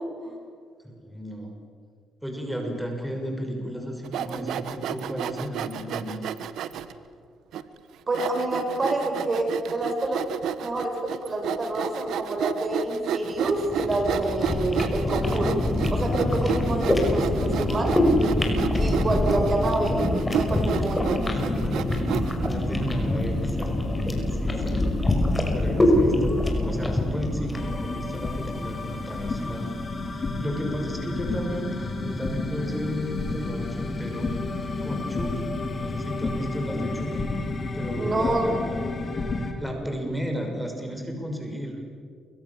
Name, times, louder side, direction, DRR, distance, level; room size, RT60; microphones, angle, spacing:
voice 1, 0.8-1.5 2.2-6.3 18.9-19.5 21.6-21.9 22.2-24.9 25.5-29.8 30.1-34.3 34.8-37.3 37.7-38.8 39.1-41.8, equal, ahead, 2 dB, 6.0 m, -33 dB
Sawing, 4.0-6.9 7.5-7.6 8.1-22.5, right 8 dB, 80° right, 1.3 m, -31 dB
voice 2, 8.1-10.2 10.6-15.6 15.9-18.0 18.8-20.0 20.3-21.3 38.0-38.4, right 2 dB, 30° right, 2 dB, 8.0 m, -28 dB
sound 1, 13.4-28.7, left 1 dB, 20° left, 5.7 m, -25 dB
sound 2, 27.5-39.5, left 3 dB, 35° left, 4.4 m, -31 dB
29.0 x 24.5 x 7.3 m, 2.1 s
cardioid pair, 90°, 0 cm